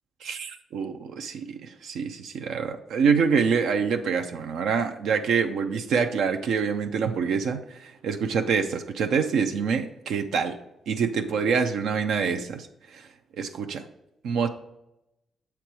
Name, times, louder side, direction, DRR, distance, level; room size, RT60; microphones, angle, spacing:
voice 1, 0.2-10.6 10.9-12.7 12.9-13.0 13.4-13.9 14.2-14.5, right 6 dB, 90° right, 6 dB, 0.5 m, -26 dB
7.0 x 4.4 x 4.7 m, 0.87 s
cardioid pair, 100°, 0 cm